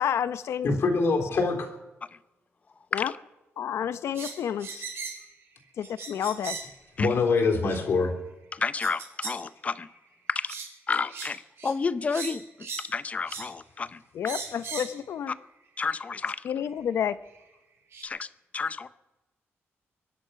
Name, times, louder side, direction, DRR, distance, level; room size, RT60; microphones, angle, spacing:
voice 1, 0.0-0.7 2.9-3.1 3.6-4.8 5.8-6.6 14.1-15.3 16.4-17.2, left 9 dB, 75° left, 14 dB, 0.8 m, -30 dB
voice 2, 0.6-1.7 7.0-8.1, left 4 dB, 55° left, 2 dB, 3.5 m, -24 dB
sound 1, 4.1-5.3 5.8-6.8 7.7-7.8 8.8-9.4 9.8-10.0 10.5-10.7 11.1-11.3 11.6-11.7 12.1-12.9 13.3-13.5 14.2-15.0 16.0-16.1 17.3-17.4 17.9-18.0, right 5 dB, 60° right, 2.9 m, -38 dB
voice 3, 8.5-9.9 10.3-10.5 10.9-14.0 15.3-15.4 15.8-16.4 18.0-18.9, left 4 dB, 30° left, 15 dB, 0.6 m, -31 dB
23.5 x 10.0 x 5.8 m, 1.0 s
wide cardioid pair, 150°, 5 cm